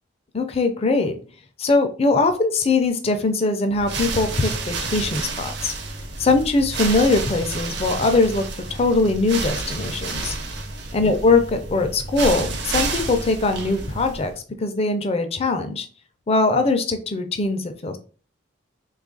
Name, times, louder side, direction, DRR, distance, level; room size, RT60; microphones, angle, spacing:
voice 1, 0.3-1.1 1.6-5.7 6.2-10.4 10.9-14.3 14.6-15.9 16.3-18.0, left 3 dB, 30° left, 7 dB, 0.4 m, -21 dB
sound 1, 3.7-14.4, right 3 dB, 60° right, 0.6 m, -30 dB
3.0 x 2.4 x 3.8 m, 0.39 s
head